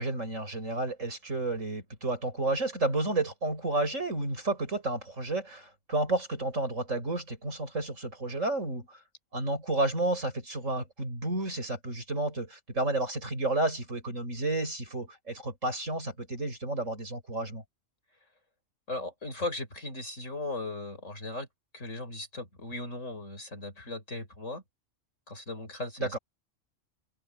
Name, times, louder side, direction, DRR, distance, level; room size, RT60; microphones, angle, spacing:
voice 1, 0.0-9.0 9.3-17.6 26.0-26.2, right 2 dB, 80° right, 6.5 m, -31 dB
voice 2, 18.9-21.5 21.7-24.6 25.3-26.2, left 2 dB, 75° left, 6.7 m, -37 dB
omnidirectional pair, 1.3 m